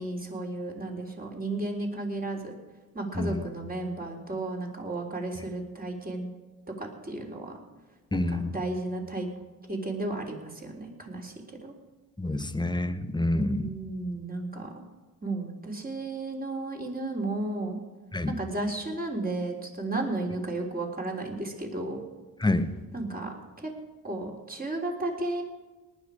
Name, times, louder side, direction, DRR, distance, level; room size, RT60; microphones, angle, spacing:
voice 1, 0.0-2.5 2.9-6.3 6.8-7.6 8.1-9.3 9.7-11.7 13.3-14.7 15.2-17.8 18.3-22.0 22.9-23.7 24.0-25.4, right 2 dB, 20° right, 1 dB, 3.6 m, -33 dB
voice 2, 8.1-8.5 12.2-13.7 18.1-18.3 22.4-22.7, left 2 dB, 10° left, 10 dB, 1.2 m, -27 dB
19.0 x 10.5 x 5.0 m, 1.2 s
supercardioid pair, 55°, 41 cm